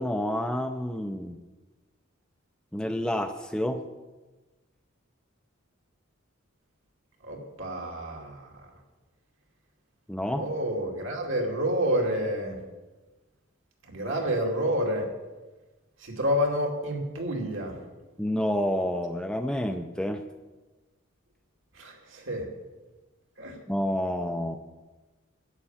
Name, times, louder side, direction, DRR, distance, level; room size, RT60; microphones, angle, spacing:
voice 1, 0.0-1.4 2.7-3.8 10.1-10.5 18.2-20.2 23.7-24.6, left 1 dB, 5° left, 6 dB, 0.5 m, -29 dB
voice 2, 7.2-8.5 10.3-12.6 13.9-15.1 16.0-17.7 21.8-22.5 23.4-23.5, equal, 70° right, 1 dB, 2.6 m, -29 dB
11.5 x 9.1 x 7.4 m, 1.2 s
head